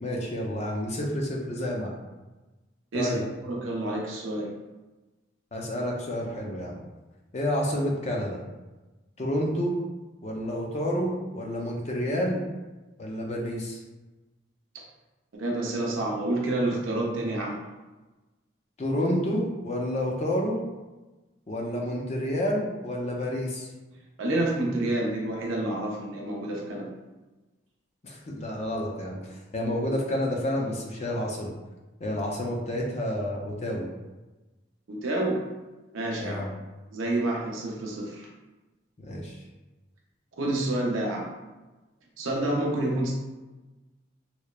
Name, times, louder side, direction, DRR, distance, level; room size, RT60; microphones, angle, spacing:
voice 1, 0.0-1.9 2.9-3.2 5.5-6.8 7.3-8.4 9.2-9.7 10.2-12.5 13.0-13.8 18.8-20.6 21.5-23.7 28.0-31.5 32.0-33.9 36.2-36.5 39.0-39.4, equal, 35° left, -1 dB, 0.4 m, -29 dB
voice 2, 3.5-4.5 14.7-14.8 15.3-17.6 24.2-26.9 34.9-35.4 35.9-36.5 36.9-38.3 40.4-41.3 42.2-43.1, right 1 dB, 90° right, -1 dB, 0.5 m, -28 dB
2.9 x 2.0 x 2.2 m, 1.2 s
head